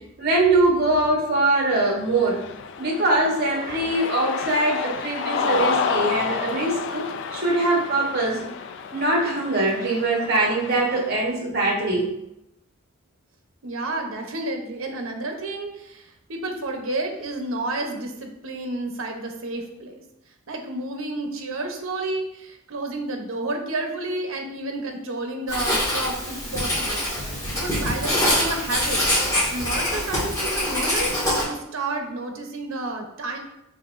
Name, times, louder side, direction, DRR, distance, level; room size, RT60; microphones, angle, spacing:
voice 1, 0.2-2.4 2.8-7.0 7.3-8.5 8.9-12.1, right 2 dB, 50° right, -2 dB, 1.0 m, -22 dB
Cheering, 2.0-11.2, left 5 dB, 60° left, 0.3 m, -30 dB
voice 2, 13.6-20.0 20.5-29.0 29.5-31.1 31.4-33.4, right 2 dB, 75° right, 4 dB, 0.8 m, -31 dB
Writing, 25.5-31.4, left 1 dB, 15° left, 1.6 m, -24 dB
5.7 x 3.5 x 2.5 m, 0.85 s
head